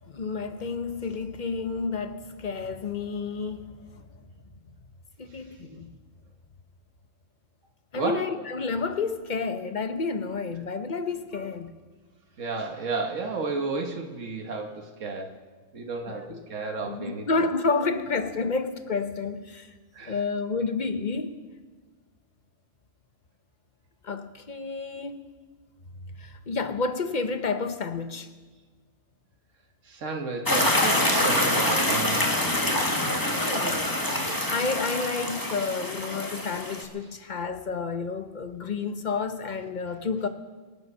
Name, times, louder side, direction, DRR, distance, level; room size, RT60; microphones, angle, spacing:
voice 1, 0.0-4.0 5.2-5.9 7.9-11.7 16.1-16.4 16.8-19.7 20.0-21.4 24.0-25.2 26.2-28.3 33.2-33.9 34.5-40.3, left 4 dB, 40° left, 1.0 m, -30 dB
voice 2, 7.9-8.2 11.3-11.5 12.4-15.3 15.7-17.4 19.9-20.2 29.8-32.3, right 3 dB, 90° right, 1.7 m, -33 dB
sound 1, 30.5-36.8, left 1 dB, 15° left, 1.6 m, -25 dB
24.5 x 9.4 x 5.5 m
omnidirectional pair, 1.3 m